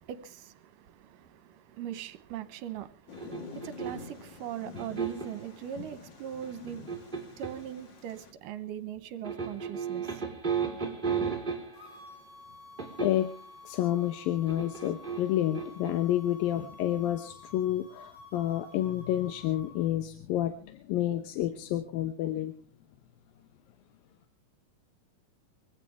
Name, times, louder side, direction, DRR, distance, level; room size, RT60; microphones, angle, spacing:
voice 1, 0.0-10.2 10.7-10.8, right 10 dB, 75° right, 2.6 m, -41 dB
Thunder, 3.1-8.3, left 5 dB, 45° left, 1.7 m, -47 dB
sound 1, 3.1-4.2 4.8-5.4 6.4-7.7 9.2-12.0 12.8-13.3 14.5-15.9, right 6 dB, 15° right, 3.2 m, -34 dB
sound 2, 11.7-19.9, left 3 dB, 60° left, 6.2 m, -51 dB
voice 2, 13.0-13.3 13.6-22.5, left 12 dB, 90° left, 2.7 m, -29 dB
23.5 x 16.0 x 3.5 m
omnidirectional pair, 4.0 m